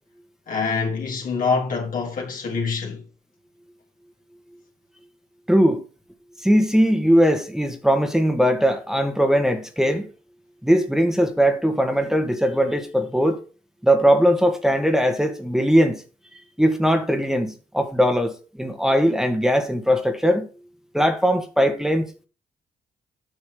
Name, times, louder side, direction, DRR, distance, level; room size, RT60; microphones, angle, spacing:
voice 1, 0.5-3.0, left 5 dB, 60° left, 3.3 m, -25 dB
voice 2, 5.5-5.8 6.4-10.0 10.6-13.4 13.8-16.0 16.6-20.5 20.9-22.1, equal, 5° right, 1.8 m, -20 dB
8.9 x 6.1 x 5.0 m
hypercardioid pair, 45°, 16 cm